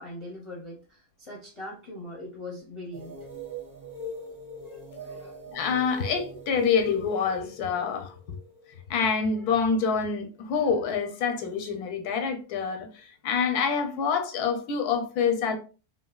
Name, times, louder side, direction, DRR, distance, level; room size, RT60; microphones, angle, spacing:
voice 1, 0.0-3.2 5.0-5.4 6.3-6.4, left 1 dB, 35° left, 0.5 m, -41 dB
sound 1, 2.9-9.3, equal, 35° right, 0.8 m, -41 dB
voice 2, 5.5-8.4 8.9-15.6, left 6 dB, 85° left, 1.2 m, -27 dB
3.1 x 2.6 x 2.3 m
omnidirectional pair, 1.6 m